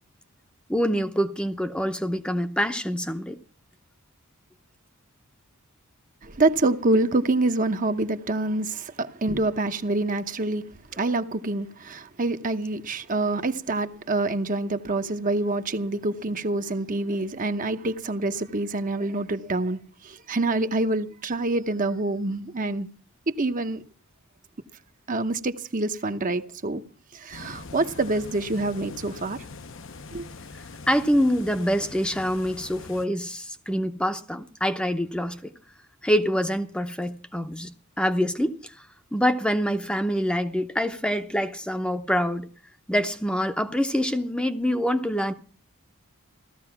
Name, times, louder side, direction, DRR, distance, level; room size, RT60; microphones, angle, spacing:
voice 1, 0.7-3.4 30.9-35.5 36.0-38.7 39.1-42.5 42.9-45.3, equal, 5° left, 0.8 m, -25 dB
voice 2, 6.2-10.7 10.9-22.9 23.4-23.8 25.1-26.8 27.1-29.4 30.1-30.3, right 2 dB, 35° right, 0.9 m, -26 dB
sound 1, 27.3-33.1, left 3 dB, 60° left, 0.9 m, -42 dB
16.0 x 13.5 x 5.9 m
head